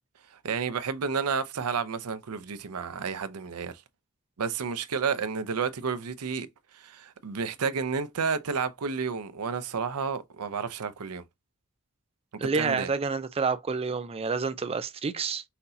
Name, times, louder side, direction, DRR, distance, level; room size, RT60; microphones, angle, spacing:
voice 1, 0.4-3.8 4.4-6.5 6.7-11.2 12.4-12.9, right 5 dB, 90° right, 0.6 m, -31 dB
voice 2, 12.4-15.4, right 5 dB, 25° right, 0.4 m, -29 dB
5.9 x 2.7 x 2.7 m
head